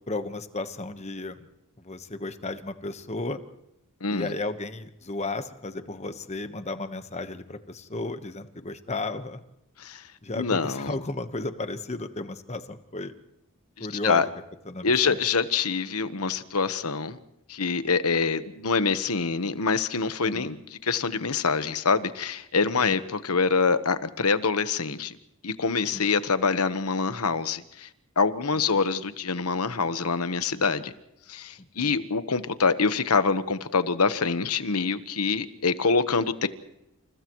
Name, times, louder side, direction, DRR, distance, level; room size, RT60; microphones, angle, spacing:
voice 1, 0.1-1.4 1.8-3.4 4.1-9.4 10.2-13.1 13.8-14.3 14.7-15.2 20.2-20.5 22.8-23.0 25.9-26.0 28.7-28.8 31.6-32.0, left 2 dB, 30° left, 1.2 m, -34 dB
voice 2, 4.0-4.3 9.8-10.0 10.3-10.9 13.8-14.3 14.8-17.2 17.5-25.1 25.4-27.9 28.2-30.9 31.3-36.5, left 4 dB, 85° left, 1.2 m, -25 dB
29.5 x 28.5 x 3.1 m
head